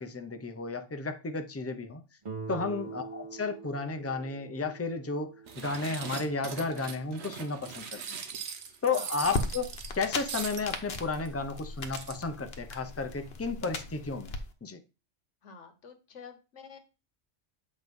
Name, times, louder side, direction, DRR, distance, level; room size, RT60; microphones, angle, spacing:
voice 1, 0.0-2.0 2.5-8.2 8.8-14.3 14.6-14.8, left 4 dB, 20° left, 0.5 m, -33 dB
Guitar, 2.2-7.0, right 4 dB, 30° right, 0.7 m, -45 dB
sound 1, 5.5-10.8 11.2-11.3 11.6-11.7 11.9-12.1, right 6 dB, 65° right, 1.1 m, -40 dB
sound 2, 9.2-14.4, left 3 dB, 60° left, 1.1 m, -38 dB
voice 2, 15.4-16.8, left 6 dB, 85° left, 1.4 m, -48 dB
7.8 x 3.2 x 5.3 m
omnidirectional pair, 1.2 m